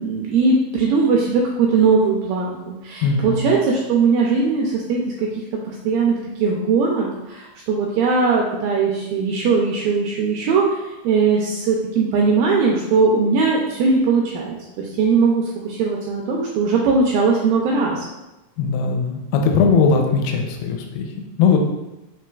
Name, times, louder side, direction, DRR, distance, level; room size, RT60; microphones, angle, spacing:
voice 1, 0.0-5.3 5.7-10.7 11.0-18.0, right 4 dB, 85° right, -2 dB, 2.0 m, -19 dB
voice 2, 3.0-3.5 18.6-21.6, left 5 dB, 90° left, 3 dB, 2.5 m, -19 dB
5.8 x 3.1 x 2.3 m, 1.0 s
omnidirectional pair, 4.5 m